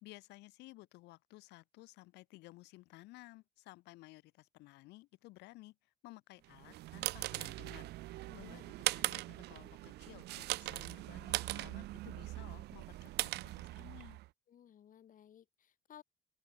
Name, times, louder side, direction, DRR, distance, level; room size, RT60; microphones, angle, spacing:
voice 1, 0.0-5.7 6.0-14.2, left 19 dB, 85° left, 3.3 m, -56 dB
sound 1, 6.5-14.3, right 18 dB, 80° right, 0.9 m, -40 dB
voice 2, 8.2-8.6 14.5-16.0, left 9 dB, 50° left, 3.7 m, -59 dB
open air
cardioid pair, 110°, 17 cm